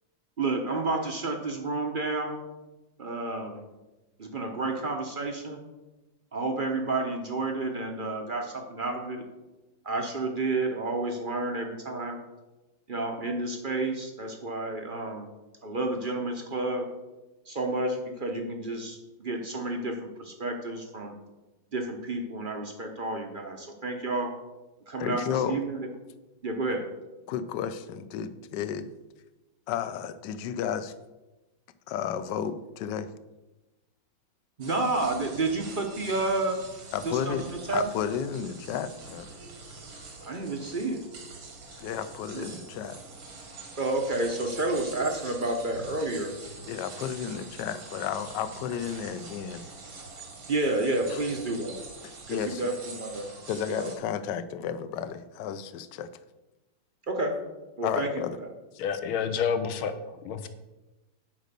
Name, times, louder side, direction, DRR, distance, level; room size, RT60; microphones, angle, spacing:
voice 1, 0.4-2.4 3.0-3.6 4.2-5.6 6.3-9.3 9.8-12.2 12.9-15.3 15.6-16.9 17.5-21.1 21.7-24.3 24.9-25.9 26.4-26.9 34.6-36.6 37.0-37.9 40.2-41.0 42.3-42.5 43.8-46.3 50.5-51.8 52.3-53.3 53.7-53.9 57.1-57.4 57.8-58.1 58.4-58.5, right 2 dB, 45° right, 3 dB, 0.6 m, -30 dB
voice 2, 25.0-25.6 27.3-28.9 29.7-30.9 31.9-33.1 36.9-39.3 41.8-43.0 46.7-49.6 51.1-51.2 52.3-52.7 53.5-56.1 57.8-58.4, left 8 dB, 70° left, 12 dB, 1.1 m, -32 dB
sound 1, 34.6-54.0, right 3 dB, 85° right, 2.6 m, -45 dB
voice 3, 58.8-60.5, left 7 dB, 90° left, 10 dB, 1.7 m, -29 dB
9.2 x 5.1 x 6.7 m, 1.1 s
omnidirectional pair, 2.3 m